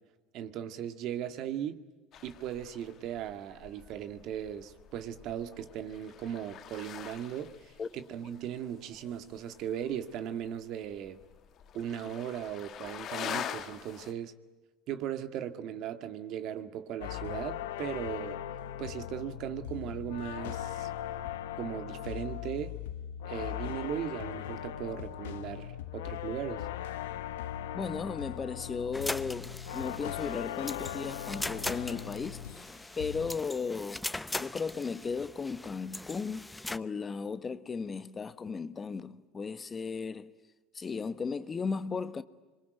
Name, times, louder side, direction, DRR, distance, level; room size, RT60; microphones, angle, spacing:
voice 1, 0.3-1.8 2.2-11.2 11.7-14.3 14.9-18.4 18.8-20.9 21.6-22.8 23.2-26.7, right 10 dB, 60° right, 1.8 m, -38 dB
sound 1, 2.1-14.1, left 9 dB, 50° left, 1.8 m, -45 dB
sound 2, 17.0-32.7 33.0-33.4, left 11 dB, 90° left, 1.1 m, -39 dB
voice 2, 27.7-32.7 33.0-34.1 34.4-40.3 40.7-42.2, left 5 dB, 25° left, 1.3 m, -36 dB
sound 3, 28.9-36.8, left 2 dB, 10° left, 0.9 m, -40 dB
26.0 x 23.0 x 9.3 m
supercardioid pair, 95°, 0 cm